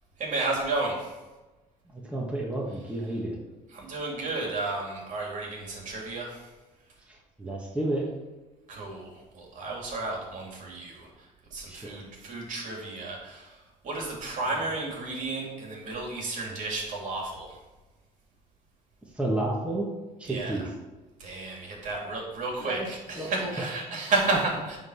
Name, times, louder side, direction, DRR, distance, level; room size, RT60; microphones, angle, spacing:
voice 1, 0.2-1.1 3.7-6.4 8.7-11.1 11.5-13.5 13.8-17.5 20.3-20.6 21.2-24.4, right 3 dB, 55° right, -1 dB, 3.0 m, -32 dB
voice 2, 1.9-3.4 7.1-8.1 11.7-12.0 19.1-19.9 20.2-20.7 22.6-22.9 23.2-23.7 24.3-24.6, right 1 dB, 5° right, -3 dB, 1.8 m, -31 dB
9.0 x 3.9 x 6.4 m, 1.2 s
cardioid pair, 90°, 16 cm